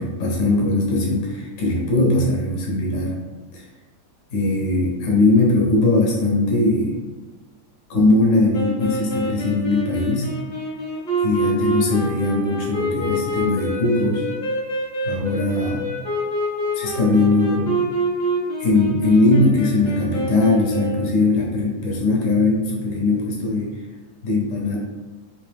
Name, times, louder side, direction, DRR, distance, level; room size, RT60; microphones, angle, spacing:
voice 1, 0.0-3.1 3.5-3.6 4.3-7.0 7.9-10.3 11.2-14.3 15.0-15.8 16.7-17.7 18.6-23.7 24.2-24.8, left 2 dB, 60° left, -2 dB, 1.2 m, -20 dB
sound 1, 8.5-21.1, equal, 40° left, 0.7 m, -26 dB
3.3 x 2.9 x 3.3 m, 1.2 s
omnidirectional pair, 1.7 m